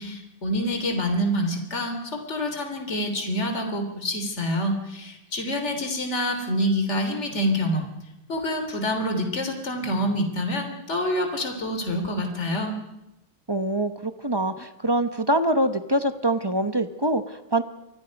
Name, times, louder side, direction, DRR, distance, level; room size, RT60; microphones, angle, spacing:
voice 1, 0.0-7.9 8.3-12.7, equal, 35° left, 5 dB, 3.6 m, -27 dB
voice 2, 13.5-17.6, right 1 dB, 30° right, 9 dB, 0.4 m, -24 dB
29.5 x 24.0 x 5.3 m, 0.91 s
omnidirectional pair, 2.2 m